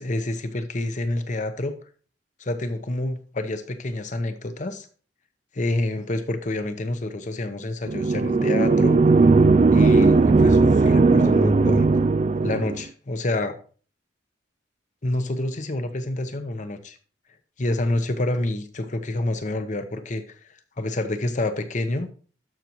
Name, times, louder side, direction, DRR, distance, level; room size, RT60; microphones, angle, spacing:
voice 1, 0.0-1.7 2.4-4.9 5.5-9.0 9.7-11.9 12.4-13.6 15.0-17.0 17.6-20.4 20.8-22.1, left 2 dB, 40° left, 9 dB, 0.9 m, -28 dB
sound 1, 7.9-12.8, right 3 dB, 35° right, 0.3 m, -17 dB
12.5 x 6.3 x 3.0 m, 0.41 s
head